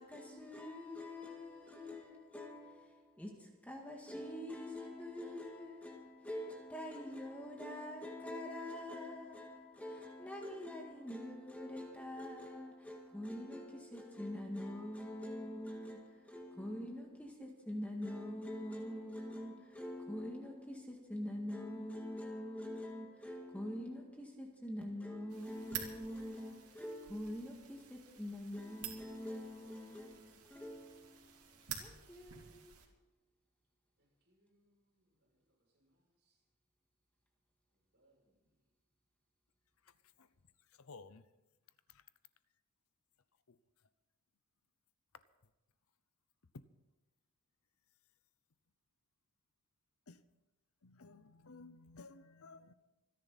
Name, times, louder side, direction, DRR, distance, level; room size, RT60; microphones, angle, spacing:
voice 1, 0.0-32.7, left 1 dB, 5° left, 1.8 m, -45 dB
sound 1, 25.3-32.9, right 9 dB, 80° right, 2.7 m, -50 dB
voice 2, 34.0-36.4 37.7-38.5, right 1 dB, 50° right, 7.3 m, -77 dB
voice 3, 39.8-40.3 40.8-41.3 41.9-42.0 43.5-43.6 46.5-46.6 50.1-50.2 50.8-52.7, left 3 dB, 70° left, 0.8 m, -55 dB
27.0 x 10.5 x 4.2 m
head